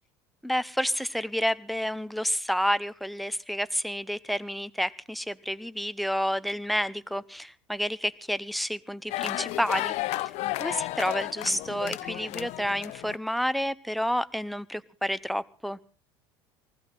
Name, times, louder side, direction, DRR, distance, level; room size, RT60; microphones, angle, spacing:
voice 1, 0.4-10.3 10.6-15.8, equal, ahead, 15 dB, 0.7 m, -30 dB
sound 1, 9.1-13.2, left 17 dB, 60° left, 0.7 m, -33 dB
19.5 x 15.5 x 3.9 m, 0.38 s
hypercardioid pair, 80°, 13 cm